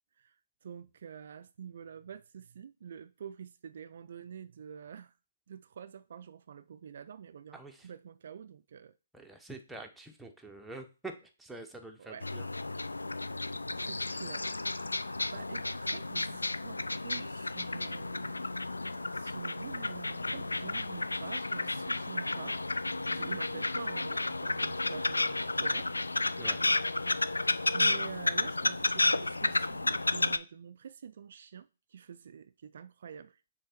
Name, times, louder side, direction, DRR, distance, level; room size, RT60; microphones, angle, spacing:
voice 1, 0.2-5.1 5.5-8.9 12.0-12.3 13.7-14.6 14.9-18.5 19.0-25.9 27.7-33.4, right 8 dB, 55° right, 0.3 m, -47 dB
voice 2, 7.5-7.9 9.1-12.5 26.4-26.7, right 2 dB, 5° right, 0.7 m, -46 dB
sound 1, 12.2-30.4, left 2 dB, 85° left, 0.3 m, -32 dB
6.5 x 3.4 x 4.3 m
figure-of-eight pair, 135°, 0 cm